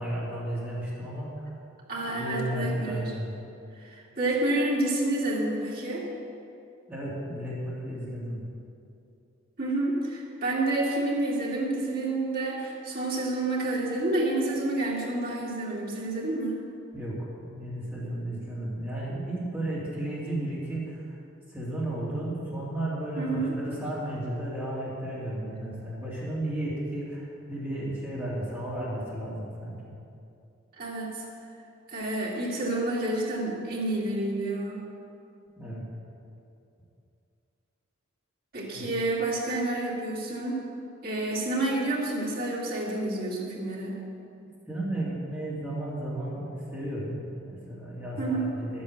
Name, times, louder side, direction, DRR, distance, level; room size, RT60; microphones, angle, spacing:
voice 1, 0.0-1.5 2.0-3.3 6.9-8.4 16.9-21.2 21.5-29.9 35.6-35.8 38.7-38.8 44.4-48.8, right 1 dB, 10° right, -7 dB, 2.5 m, -33 dB
voice 2, 1.9-3.1 3.8-6.1 9.6-16.6 23.2-23.5 30.8-31.2 31.9-34.9 38.5-40.7 41.0-44.0 48.2-48.5, right 2 dB, 45° right, -4 dB, 2.8 m, -29 dB
11.5 x 8.5 x 7.9 m, 2.6 s
head